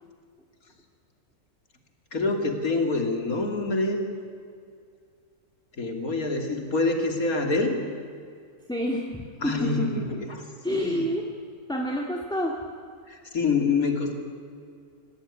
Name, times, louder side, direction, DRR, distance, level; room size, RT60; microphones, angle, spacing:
voice 1, 2.1-4.0 5.8-7.8 9.4-10.3 10.6-11.1 13.1-14.1, left 3 dB, 70° left, 3 dB, 3.3 m, -26 dB
voice 2, 8.7-10.2 10.6-11.3 11.7-12.6, equal, 5° left, 0 dB, 2.1 m, -29 dB
26.0 x 18.0 x 9.7 m, 2.3 s
omnidirectional pair, 1.6 m